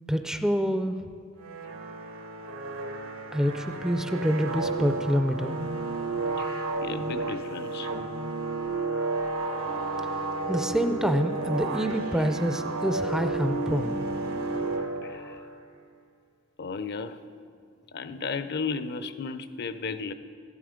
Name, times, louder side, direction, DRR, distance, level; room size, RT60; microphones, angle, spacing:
voice 1, 0.1-1.0 3.3-5.6 10.5-13.9, equal, 5° right, 8 dB, 0.4 m, -27 dB
sound 1, 1.4-15.5, right 3 dB, 90° right, 1.3 m, -32 dB
voice 2, 6.4-7.9 15.0-15.5 16.6-17.2 17.9-20.1, left 4 dB, 50° left, 12 dB, 0.5 m, -34 dB
14.0 x 11.0 x 5.0 m, 2.3 s
head